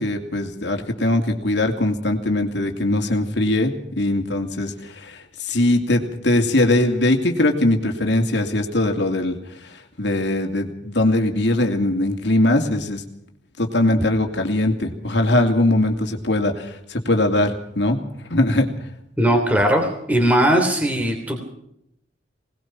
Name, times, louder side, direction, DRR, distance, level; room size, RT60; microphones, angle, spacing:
voice 1, 0.0-9.4 9.6-13.0 13.6-18.0 18.3-18.7, left 1 dB, 65° left, 4 dB, 2.7 m, -21 dB
voice 2, 19.2-21.4, right 1 dB, 10° right, 3 dB, 3.1 m, -19 dB
22.0 x 19.5 x 5.9 m, 0.75 s
head